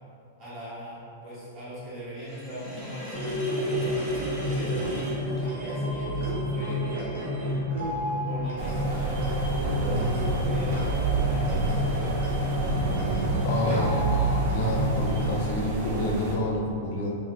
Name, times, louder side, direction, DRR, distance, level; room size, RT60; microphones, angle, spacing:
voice 1, 0.4-7.2 8.3-12.6 13.6-13.8, right 1 dB, 35° right, -10 dB, 1.3 m, -40 dB
Sink (filling or washing), 2.2-6.1, equal, 5° left, 0.8 m, -38 dB
sound 1, 3.1-15.2, right 1 dB, 75° right, 0.9 m, -29 dB
sound 2, 8.6-16.4, right 2 dB, 50° right, 0.5 m, -29 dB
voice 2, 13.4-17.1, left 1 dB, 55° left, -1 dB, 0.5 m, -29 dB
3.0 x 2.1 x 3.0 m, 2.4 s
hypercardioid pair, 140°, 0 cm